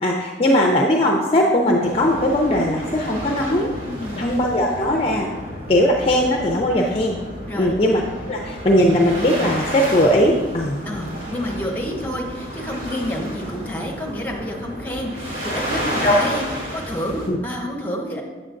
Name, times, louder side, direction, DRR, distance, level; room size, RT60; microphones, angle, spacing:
voice 1, 0.0-3.7 4.2-5.4 5.7-7.2 7.6-8.0 8.3-10.8 16.0-16.2 17.3-17.4, left 1 dB, 35° left, 0 dB, 0.5 m, -19 dB
sound 1, 1.8-17.3, equal, 90° right, 2.3 m, -31 dB
voice 2, 3.9-4.2 7.5-7.7 10.8-16.4 16.7-18.2, equal, 10° left, -1 dB, 0.9 m, -29 dB
7.5 x 7.4 x 2.6 m, 1.3 s
head